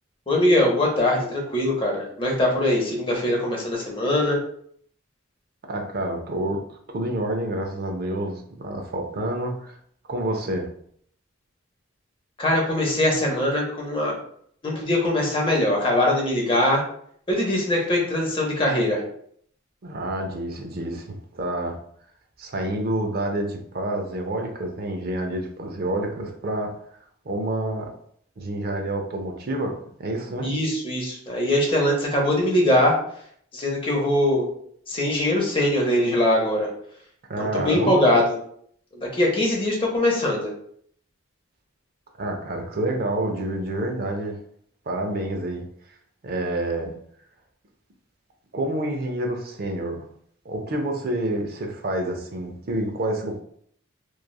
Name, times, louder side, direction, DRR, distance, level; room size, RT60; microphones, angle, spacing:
voice 1, 0.3-4.4 12.4-14.2 14.6-16.8 17.3-19.0 30.4-32.9 33.5-34.5 34.9-36.7 37.4-38.2 38.9-40.5, left 1 dB, 25° left, -1 dB, 0.7 m, -22 dB
voice 2, 5.7-9.8 10.1-10.7 19.8-21.8 22.4-26.7 27.2-27.9 28.4-30.5 37.3-38.1 42.2-44.4 44.9-45.6 46.2-46.9 48.5-50.0 50.5-53.4, right 1 dB, 50° right, 3 dB, 0.5 m, -28 dB
3.1 x 2.3 x 2.3 m, 0.64 s
head